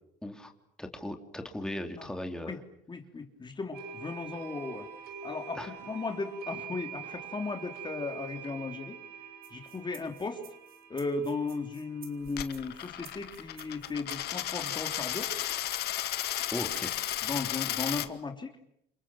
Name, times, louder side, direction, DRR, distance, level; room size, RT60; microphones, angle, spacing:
voice 1, 0.2-0.5 0.8-2.6 5.5-5.7 16.5-17.0, left 1 dB, 5° left, 5 dB, 3.4 m, -37 dB
voice 2, 2.9-4.9 5.2-9.0 9.5-10.4 10.9-15.3 17.2-18.5, left 3 dB, 25° left, 5 dB, 3.0 m, -36 dB
sound 1, 3.7-15.4, right 6 dB, 75° right, 6.2 m, -46 dB
sound 2, 9.4-17.1, right 9 dB, 60° right, 4.8 m, -53 dB
Coin (dropping), 12.3-18.1, left 13 dB, 70° left, 2.0 m, -34 dB
29.0 x 27.0 x 7.5 m, 0.74 s
cardioid pair, 110°, 17 cm